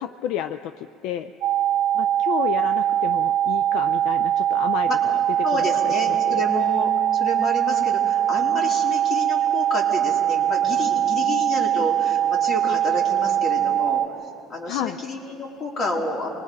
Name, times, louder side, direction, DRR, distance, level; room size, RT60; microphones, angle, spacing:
voice 1, 0.0-1.3 1.9-6.4 14.7-15.0, left 11 dB, 75° left, 11 dB, 0.5 m, -31 dB
sound 1, 1.4-14.1, right 11 dB, 70° right, 0.6 m, -22 dB
voice 2, 5.4-14.0 14.5-16.3, left 1 dB, 40° left, -1 dB, 3.7 m, -29 dB
26.0 x 20.5 x 5.4 m, 2.9 s
supercardioid pair, 110°, 0 cm